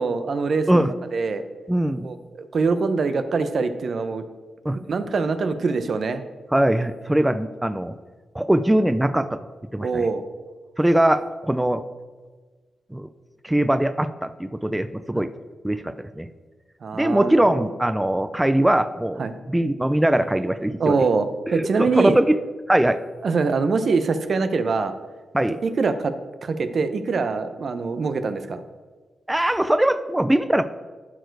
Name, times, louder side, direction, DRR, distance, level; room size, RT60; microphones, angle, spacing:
voice 1, 0.0-1.4 2.0-4.2 4.7-6.2 9.8-10.2 15.1-15.2 16.8-17.6 19.2-19.3 20.8-22.2 23.2-24.9 25.6-26.1 26.4-28.6, right 4 dB, 60° right, 10 dB, 0.6 m, -24 dB
voice 2, 1.7-2.1 4.6-4.8 6.5-8.0 8.3-9.5 9.7-10.0 10.8-11.8 12.9-13.1 13.4-15.3 15.6-16.3 16.9-21.0 21.5-22.4 22.7-23.0 25.3-25.6 29.3-30.6, right 1 dB, 10° right, 11 dB, 0.4 m, -21 dB
12.5 x 4.6 x 4.6 m, 1.4 s
cardioid pair, 75°, 0 cm